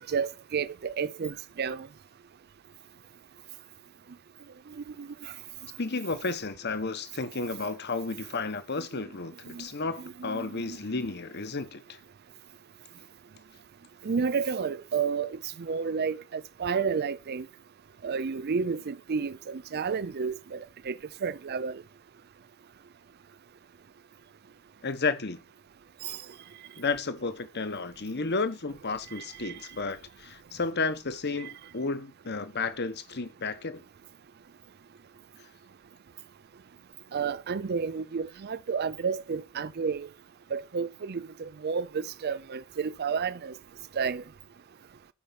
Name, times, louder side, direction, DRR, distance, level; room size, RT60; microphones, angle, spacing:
voice 1, 0.1-1.9 4.8-5.3 9.5-9.7 10.2-10.8 14.0-17.5 18.0-20.6 20.9-21.0 21.2-21.8 26.0-26.2 29.4-29.5 31.4-31.5 37.1-40.1 40.5-43.5 44.0-44.2, right 5 dB, 45° right, 0.5 m, -31 dB
voice 2, 5.8-11.8 24.8-25.4 26.8-33.8, left 3 dB, 50° left, 1.2 m, -32 dB
11.5 x 5.6 x 5.9 m
head